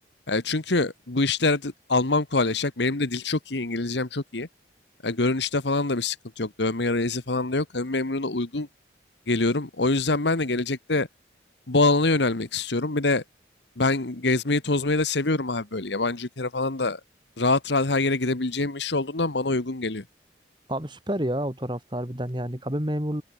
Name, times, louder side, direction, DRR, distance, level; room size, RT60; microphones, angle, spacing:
voice 1, 0.3-4.5 5.0-8.7 9.3-11.1 11.7-13.2 13.8-17.0 17.4-20.0, left 3 dB, 75° left, 1.5 m, -25 dB
voice 2, 20.7-23.2, right 1 dB, 25° right, 2.6 m, -29 dB
open air
head